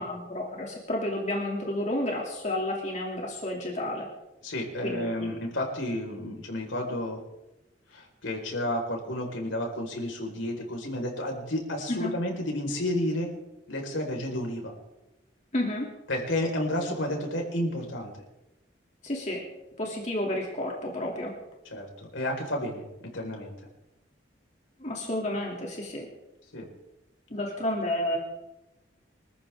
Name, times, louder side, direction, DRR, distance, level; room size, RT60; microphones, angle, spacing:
voice 1, 0.0-4.1 4.8-5.3 11.9-12.1 15.5-15.9 19.0-19.4 19.8-21.3 24.8-26.1 27.3-28.2, left 1 dB, 35° left, -1 dB, 2.8 m, -31 dB
voice 2, 4.4-7.2 7.9-13.3 13.7-14.7 16.1-18.1 21.6-23.5 26.5-26.7, left 1 dB, 90° left, 1 dB, 4.8 m, -31 dB
25.0 x 14.5 x 3.7 m, 0.96 s
head